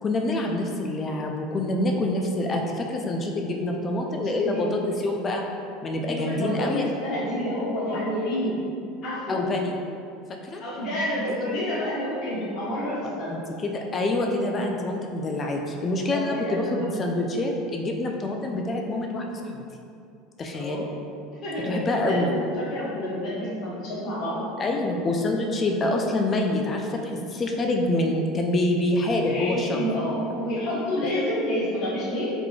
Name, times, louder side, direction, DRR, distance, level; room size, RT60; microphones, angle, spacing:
voice 1, 0.0-4.7 5.0-5.5 5.8-6.8 7.9-8.0 9.3-9.7 10.4-10.6 13.3-19.6 20.4-20.8 21.6-22.3 24.6-29.9, left 2 dB, 30° left, 2 dB, 0.4 m, -26 dB
voice 2, 4.1-4.8 6.0-8.6 9.0-9.4 10.6-13.4 16.1-17.0 20.5-20.8 21.3-24.4 29.2-32.3, left 1 dB, 55° left, -8 dB, 1.4 m, -29 dB
3.7 x 3.1 x 2.4 m, 2.5 s
supercardioid pair, 100°, 0 cm